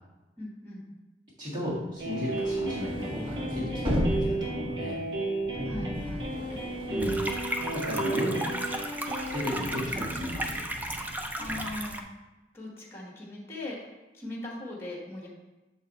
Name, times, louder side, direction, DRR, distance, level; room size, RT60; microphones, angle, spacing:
voice 1, 0.4-0.9 5.6-6.3 11.4-12.0 12.5-15.3, left 1 dB, 15° left, -2 dB, 1.2 m, -39 dB
voice 2, 1.4-5.0 6.8-7.2 7.5-8.4 9.3-10.6, left 1 dB, 50° right, -11 dB, 1.8 m, -34 dB
sound 1, 2.0-8.2 8.5-11.8, equal, 30° right, 1.2 m, -36 dB
sound 2, 2.0-9.4, right 2 dB, 75° right, 0.9 m, -33 dB
sound 3, 7.0-12.0, right 1 dB, 10° right, 0.4 m, -35 dB
6.9 x 4.1 x 4.0 m, 1.1 s
head